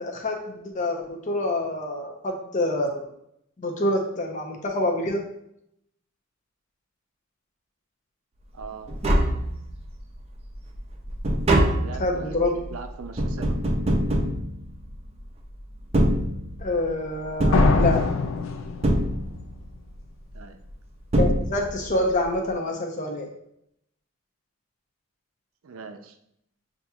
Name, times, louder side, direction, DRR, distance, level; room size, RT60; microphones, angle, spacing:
voice 1, 0.0-3.1 3.6-5.3 12.0-12.6 16.6-18.1 21.2-23.3, left 1 dB, 35° left, 2 dB, 0.7 m, -26 dB
voice 2, 8.5-8.9 11.7-12.3 12.7-13.8 20.3-20.6 25.6-26.2, right 5 dB, 85° right, 7 dB, 0.5 m, -40 dB
Tap, 8.6-8.7 8.9-10.0 10.4-15.2 15.8-16.8 17.4-18.4 18.8-19.7 20.7-20.8 21.1-22.0 22.2-22.3, right 1 dB, 30° right, 0.5 m, -24 dB
sound 1, 17.5-19.3, left 3 dB, 65° left, 0.4 m, -22 dB
6.8 x 2.8 x 2.3 m, 0.76 s
head